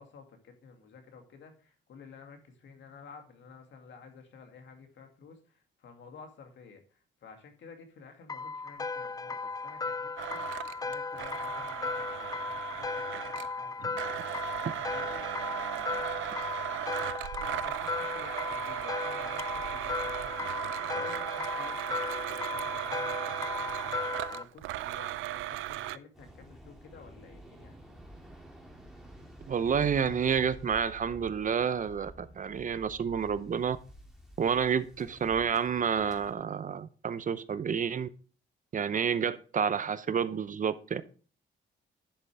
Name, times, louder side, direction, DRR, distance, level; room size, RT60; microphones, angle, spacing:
voice 1, 0.0-14.2 14.6-15.3 15.7-16.7 17.4-28.0, left 5 dB, 70° left, 2.5 m, -52 dB
sound 1, 8.3-24.4, left 4 dB, 20° left, 0.4 m, -36 dB
Domestic sounds home sounds, 10.2-13.6 14.0-26.0, right 15 dB, 85° right, 0.5 m, -37 dB
Waves surf, 26.1-36.3, equal, ahead, 2.5 m, -50 dB
voice 2, 29.5-33.8 34.4-38.1 38.7-41.0, right 7 dB, 40° right, 0.7 m, -29 dB
11.0 x 6.8 x 3.4 m
cardioid pair, 90°, 20 cm